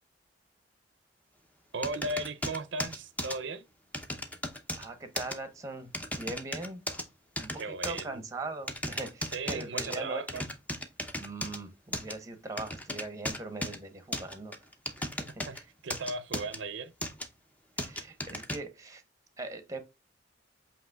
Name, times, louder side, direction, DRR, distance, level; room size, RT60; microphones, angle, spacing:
voice 1, 1.7-3.7 7.6-8.2 9.3-10.4 15.5-15.6 15.8-16.9, right 2 dB, 70° right, 0.5 m, -36 dB
sound 1, 1.8-3.4 3.9-4.9 5.2-5.4 5.9-7.0 7.4-8.0 8.7-10.0 10.3-11.6 11.9-12.1 12.6-13.8 14.1-15.6 15.9-16.6 17.0-17.3 17.8-18.6, left 1 dB, 10° left, 0.7 m, -35 dB
voice 2, 4.8-5.9 6.2-6.8 7.4-7.5 7.8-10.4 11.2-14.5 15.0-15.3 17.8-19.0 19.4-19.8, right 2 dB, 15° right, 0.9 m, -40 dB
7.8 x 2.9 x 2.3 m
head